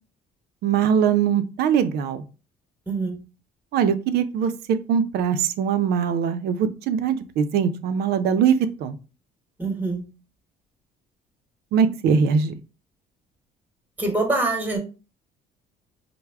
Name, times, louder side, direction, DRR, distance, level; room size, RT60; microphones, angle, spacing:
voice 1, 0.6-2.2 3.7-4.5 4.9-9.0 11.7-12.5, right 7 dB, 70° right, 11 dB, 0.5 m, -21 dB
voice 2, 2.9-3.2 9.6-10.1 14.0-14.8, right 2 dB, 10° right, 3 dB, 1.0 m, -24 dB
3.3 x 2.0 x 3.4 m, 0.32 s
cardioid pair, 110°, 17 cm